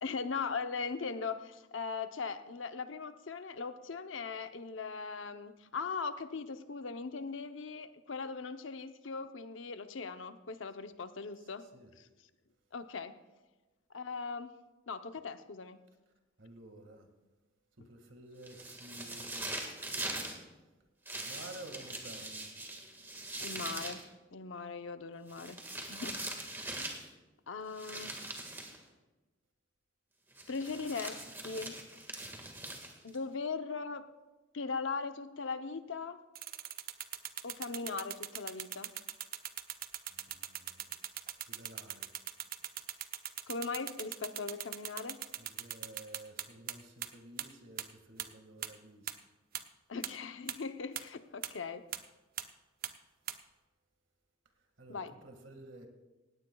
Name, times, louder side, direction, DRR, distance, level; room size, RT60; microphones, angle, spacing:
voice 1, 0.0-11.7 12.7-13.1 13.9-14.5 14.9-15.8 23.4-24.0 24.3-25.6 25.8-26.2 27.5-28.2 30.5-31.8 33.0-34.1 34.5-36.2 37.4-38.9 43.5-45.2 49.9-51.8 54.9-55.1, left 4 dB, 80° left, 0.8 m, -39 dB
voice 2, 11.4-11.9 16.4-17.1 17.8-19.6 21.1-22.5 40.1-41.0 41.5-42.1 45.4-49.2 54.6-55.9, right 1 dB, 75° right, 1.9 m, -52 dB
sound 1, 18.4-20.4 21.1-24.0 25.3-27.1 27.8-28.8 30.4-33.2, right 2 dB, 10° right, 1.7 m, -42 dB
sound 2, 36.4-46.7 47.0-47.1 47.4-47.5 47.8-47.9 48.2-48.3 48.6-48.7 49.1-49.2 49.5-49.6 50.0-50.1 50.5-50.6 51.0-51.1 51.4-51.5 51.9-52.0 52.4-52.5 52.8-52.9 53.3-53.4, right 11 dB, 50° right, 0.6 m, -39 dB
18.5 x 17.0 x 2.3 m
head